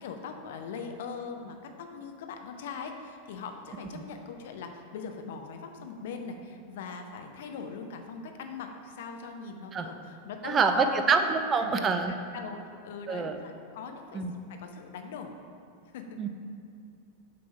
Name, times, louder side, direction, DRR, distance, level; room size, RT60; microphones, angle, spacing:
voice 1, 0.0-11.1 11.6-12.6 12.8-14.2 14.6-15.3 15.9-16.2, left 5 dB, 55° left, 4 dB, 0.6 m, -40 dB
voice 2, 10.4-12.1 13.1-13.4 14.1-14.3 16.2-16.3, right 5 dB, 25° right, 7 dB, 0.4 m, -26 dB
6.6 x 3.4 x 5.3 m, 2.5 s
figure-of-eight pair, 90°, 0 cm